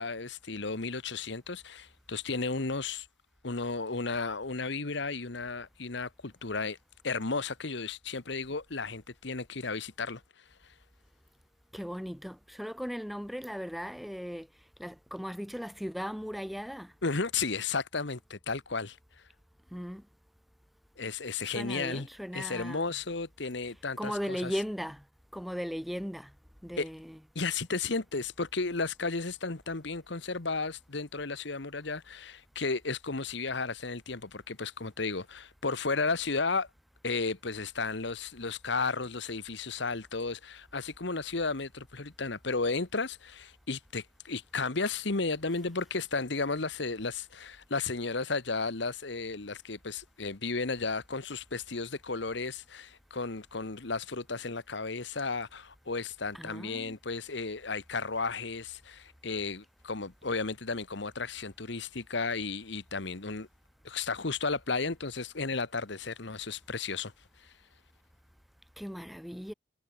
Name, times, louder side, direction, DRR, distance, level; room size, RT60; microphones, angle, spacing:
voice 1, 0.0-3.1 3.4-6.8 7.0-10.2 17.0-19.0 21.0-22.1 22.3-24.5 26.8-26.9 27.3-36.7 37.0-63.5 63.8-67.1, left 4 dB, 60° left, 1.2 m, -34 dB
voice 2, 11.7-14.5 14.8-16.9 19.7-20.0 21.4-22.9 24.0-25.0 25.3-26.3 26.6-27.2 56.3-57.0 68.8-69.5, equal, ahead, 0.7 m, -37 dB
head